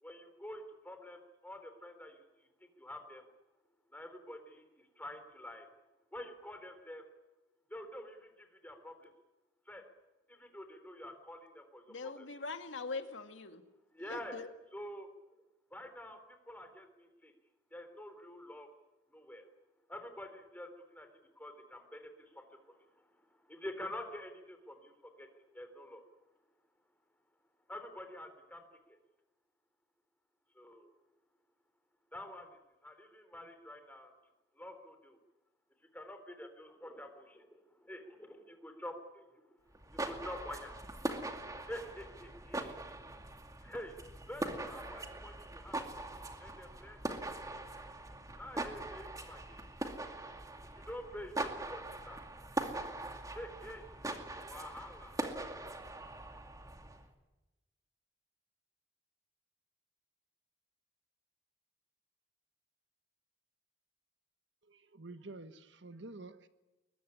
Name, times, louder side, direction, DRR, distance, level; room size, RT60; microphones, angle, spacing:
voice 1, 0.0-2.2 2.6-3.3 3.9-5.7 6.1-7.0 7.7-9.1 9.7-9.8 10.3-12.3 13.9-14.3 14.7-15.1 15.7-16.2 16.5-17.3 17.7-18.7 19.1-19.5 19.9-21.1 21.4-22.8 23.5-25.3 25.5-26.0 27.7-28.6 28.9-29.0 30.6-30.9 32.1-34.1 34.6-35.2 35.9-39.6 39.9-40.7 41.7-42.8 43.6-43.9 44.3-45.8 46.4-47.4 48.4-49.6 50.9-52.2 53.3-53.9 54.5-55.2, left 1 dB, 10° left, 7 dB, 3.5 m, -47 dB
voice 2, 11.9-13.6 14.0-14.5, left 3 dB, 80° left, 7 dB, 2.1 m, -42 dB
sound 1, 39.7-57.1, right 2 dB, 20° right, 2.4 m, -42 dB
voice 3, 64.6-66.5, right 2 dB, 70° right, 11 dB, 1.4 m, -49 dB
22.0 x 21.5 x 9.9 m, 1.1 s
head